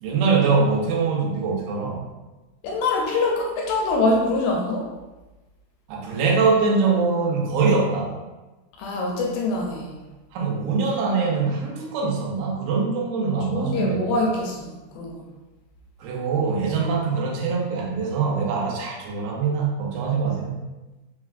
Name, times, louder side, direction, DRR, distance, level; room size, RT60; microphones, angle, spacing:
voice 1, 0.0-2.1 5.9-8.1 10.3-14.0 16.0-20.6, right 4 dB, 80° right, -1 dB, 2.4 m, -23 dB
voice 2, 2.6-4.9 8.8-10.0 13.5-15.2, left 2 dB, 80° left, -1 dB, 2.1 m, -24 dB
6.0 x 2.3 x 2.4 m, 1.1 s
omnidirectional pair, 4.6 m